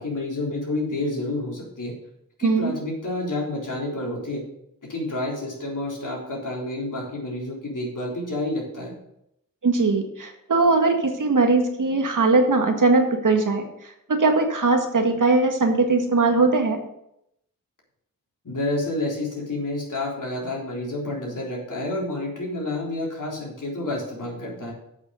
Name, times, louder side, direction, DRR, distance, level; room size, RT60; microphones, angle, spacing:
voice 1, 0.0-1.9 2.4-4.4 4.9-8.9 18.4-24.7, left 2 dB, 60° left, -3 dB, 3.8 m, -29 dB
voice 2, 2.4-2.7 9.6-13.6 14.1-16.8, right 3 dB, 60° right, 4 dB, 1.7 m, -20 dB
8.0 x 6.2 x 6.5 m, 0.79 s
cardioid pair, 50°, 35 cm